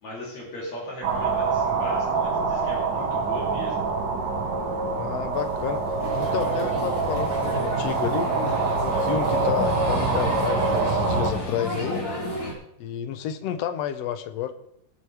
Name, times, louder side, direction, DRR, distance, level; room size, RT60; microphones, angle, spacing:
voice 1, 0.0-3.8, left 1 dB, 55° left, -4 dB, 4.2 m, -37 dB
sound 1, 1.0-11.3, right 4 dB, 80° right, 3.2 m, -25 dB
voice 2, 5.0-5.8 6.2-8.3 8.8-12.0 12.8-14.5, left 10 dB, 70° left, 10 dB, 1.6 m, -30 dB
Telephone, 5.3-10.5, left 2 dB, 5° right, 5.5 m, -46 dB
sound 2, 6.0-12.5, left 1 dB, 35° left, 3.7 m, -31 dB
21.5 x 8.2 x 3.4 m, 0.76 s
omnidirectional pair, 3.7 m